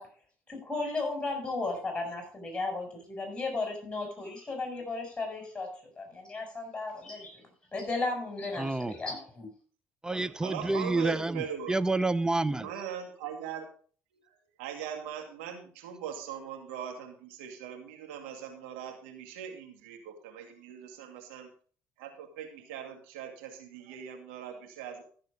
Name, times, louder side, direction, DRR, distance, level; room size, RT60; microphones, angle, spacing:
voice 1, 0.5-5.7 6.0-7.4 7.7-9.5, left 3 dB, 15° left, 6.9 m, -35 dB
voice 2, 8.6-8.9 10.0-12.7, right 2 dB, 10° right, 0.8 m, -29 dB
voice 3, 10.4-11.8 12.6-13.7 14.6-21.5 22.0-25.0, right 8 dB, 85° right, 2.4 m, -41 dB
14.0 x 7.1 x 5.2 m
hypercardioid pair, 70°, 6 cm